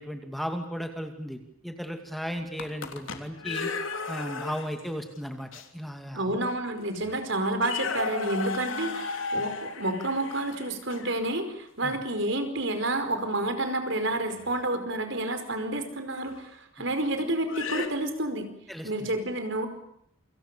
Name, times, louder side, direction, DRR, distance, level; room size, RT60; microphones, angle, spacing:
voice 1, 0.0-3.7 4.1-6.4 9.4-9.5 11.8-12.0 16.8-16.9 18.7-19.1, equal, ahead, 5 dB, 2.4 m, -36 dB
sound 1, 2.4-4.9 5.5-5.6 6.5-6.6 6.9-7.2 7.5-11.2 14.4-14.6 16.3-16.4 17.4-17.9, left 4 dB, 70° left, 3.3 m, -34 dB
voice 2, 6.1-18.5 18.8-19.7, right 1 dB, 60° right, 8 dB, 5.0 m, -29 dB
28.5 x 26.0 x 6.9 m, 0.71 s
head